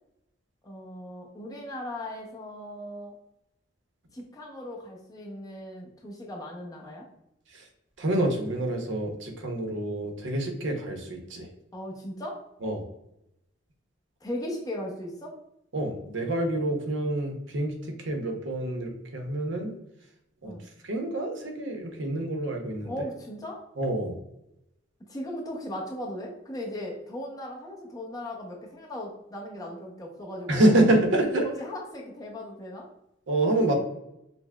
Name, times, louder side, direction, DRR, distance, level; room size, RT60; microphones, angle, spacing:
voice 1, 0.6-3.2 4.1-7.1 11.7-12.4 14.2-15.3 20.4-20.7 22.8-23.6 25.1-30.8 31.4-32.9, left 1 dB, 20° left, -2 dB, 0.6 m, -37 dB
voice 2, 8.0-11.5 12.6-12.8 15.7-17.7 18.1-19.7 20.4-20.5 20.8-22.9 23.8-24.1 30.5-31.5 33.3-33.7, right 1 dB, 70° right, 3 dB, 0.7 m, -27 dB
5.7 x 2.0 x 2.2 m, 0.83 s
head